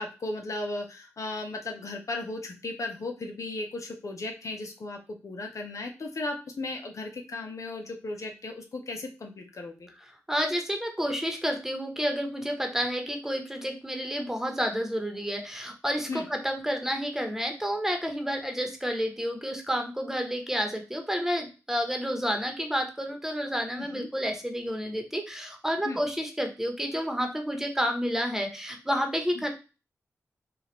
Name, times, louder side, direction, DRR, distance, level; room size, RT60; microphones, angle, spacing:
voice 1, 0.0-9.9 16.1-16.2 23.8-24.1 25.8-26.0 29.4-29.5, left 2 dB, 60° left, 3 dB, 0.8 m, -36 dB
voice 2, 10.3-29.5, equal, 5° right, 4 dB, 1.2 m, -30 dB
4.7 x 2.5 x 3.2 m, 0.31 s
cardioid pair, 45°, 6 cm